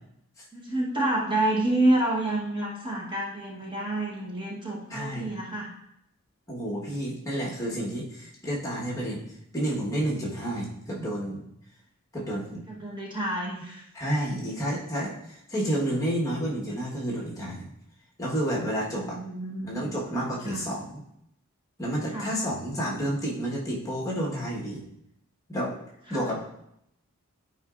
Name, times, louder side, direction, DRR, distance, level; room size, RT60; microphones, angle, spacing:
voice 1, 0.5-5.7 12.7-13.8 18.9-19.7 20.4-20.7 22.1-22.3 26.1-26.3, right 1 dB, 20° right, -5 dB, 1.2 m, -28 dB
voice 2, 4.9-5.3 6.5-9.2 9.5-11.5 12.1-12.6 13.9-17.7 18.2-19.2 19.6-21.0 21.8-24.8 25.5-25.7 26.1-26.4, right 1 dB, 15° left, -4 dB, 1.3 m, -30 dB
11.5 x 4.8 x 2.5 m, 0.78 s
head